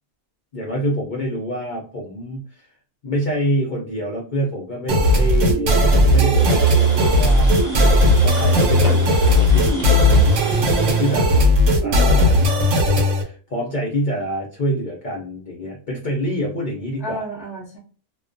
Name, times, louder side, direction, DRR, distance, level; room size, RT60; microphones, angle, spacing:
voice 1, 0.5-2.7 3.0-7.5 8.2-9.9 10.7-11.3 11.8-12.7 13.2-17.2, equal, 60° left, -1 dB, 0.5 m, -26 dB
sound 1, 4.9-13.2, equal, 65° right, 0.9 m, -16 dB
sound 2, 6.4-11.5, right 1 dB, 25° right, 0.9 m, -34 dB
voice 2, 10.4-11.5 17.0-17.8, left 1 dB, 5° right, -2 dB, 0.5 m, -32 dB
2.2 x 2.2 x 2.5 m, 0.40 s
omnidirectional pair, 1.5 m